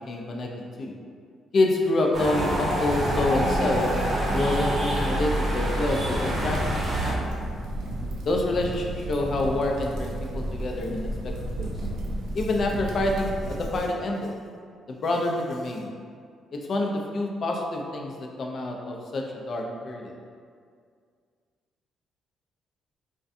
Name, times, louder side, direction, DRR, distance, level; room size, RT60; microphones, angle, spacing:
voice 1, 0.1-0.9 1.5-3.9 4.3-7.4 8.3-11.7 12.3-14.3 14.9-15.9 16.5-20.1, left 2 dB, 50° left, 0 dB, 0.3 m, -27 dB
sound 1, 2.1-7.1, right 1 dB, 50° right, 0.7 m, -26 dB
sound 2, 6.4-13.8, right 1 dB, 80° right, 0.3 m, -33 dB
2.5 x 2.1 x 2.5 m, 2.1 s
cardioid pair, 90°, 0 cm